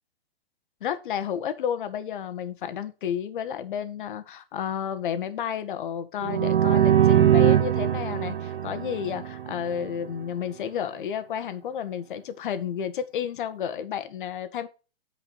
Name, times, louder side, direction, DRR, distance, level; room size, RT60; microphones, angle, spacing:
voice 1, 0.8-14.7, left 8 dB, 55° left, 1.5 m, -31 dB
sound 1, 6.2-9.9, right 10 dB, 65° right, 2.1 m, -22 dB
9.3 x 5.1 x 5.3 m
hypercardioid pair, 155°, 31 cm